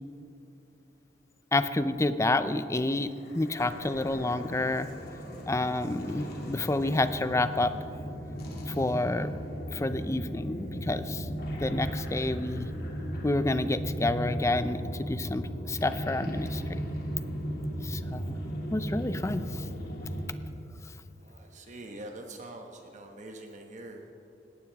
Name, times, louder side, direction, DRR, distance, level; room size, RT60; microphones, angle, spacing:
voice 1, 1.5-4.9 5.5-7.7 8.7-9.3 9.7-11.3 11.6-12.7 13.2-16.8 17.8-18.3 18.7-19.7, left 2 dB, 15° left, 12 dB, 0.5 m, -29 dB
sound 1, 3.1-20.3, equal, 60° left, 2.7 m, -36 dB
voice 2, 21.2-24.1, right 1 dB, 45° right, 2 dB, 1.3 m, -44 dB
19.5 x 17.0 x 3.6 m, 2.7 s
head